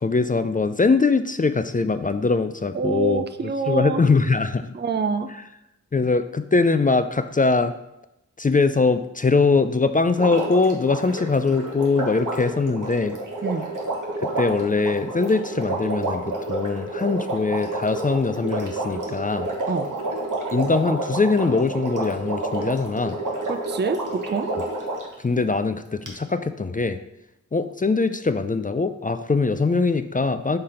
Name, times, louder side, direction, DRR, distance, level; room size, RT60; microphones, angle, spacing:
voice 1, 0.0-3.2 3.7-4.7 5.9-7.7 8.4-13.2 14.2-19.5 20.5-23.2 25.2-27.0 27.5-30.6, left 4 dB, 30° left, 10 dB, 0.3 m, -22 dB
voice 2, 2.7-4.0 4.7-5.3 13.4-13.7 19.7-19.9 23.5-24.5, right 5 dB, 35° right, 10 dB, 0.4 m, -26 dB
Water, 10.1-25.1 26.1-26.2, right 2 dB, 85° right, 1.2 m, -29 dB
6.6 x 3.8 x 4.3 m, 0.86 s
wide cardioid pair, 45°, 30 cm